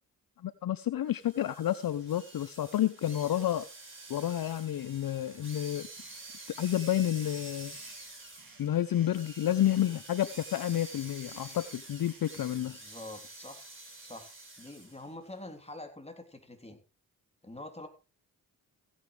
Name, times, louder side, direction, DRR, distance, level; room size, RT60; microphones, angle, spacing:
voice 1, 0.4-3.7 4.1-5.9 6.6-7.8 8.6-12.8, left 11 dB, 55° left, 15 dB, 0.7 m, -30 dB
sound 1, 1.1-15.1, right 2 dB, 30° right, 5.3 m, -48 dB
sound 2, 4.5-12.3, right 5 dB, 55° right, 2.8 m, -61 dB
voice 2, 12.5-16.8 17.4-17.9, left 2 dB, 15° left, 5 dB, 3.4 m, -46 dB
16.0 x 9.9 x 3.3 m, 0.31 s
supercardioid pair, 45°, 42 cm